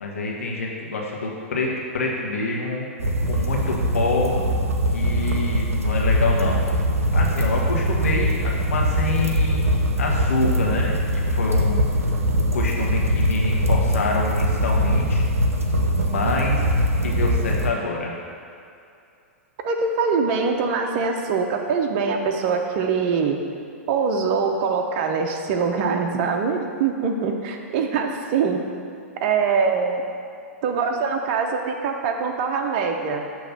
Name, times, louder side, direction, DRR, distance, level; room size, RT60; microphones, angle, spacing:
voice 1, 0.0-2.9 3.3-4.3 4.9-6.6 7.1-9.7 10.0-11.9 12.3-15.2 16.0-16.6 17.0-18.1, left 3 dB, 70° left, -2 dB, 1.2 m, -27 dB
sound 1, 3.0-17.7, equal, 85° right, 0.7 m, -22 dB
voice 2, 19.6-23.4 23.9-28.6 29.2-30.0 30.6-33.3, right 5 dB, 45° right, 3 dB, 0.7 m, -23 dB
6.9 x 3.1 x 5.7 m, 2.5 s
figure-of-eight pair, 105°, 8 cm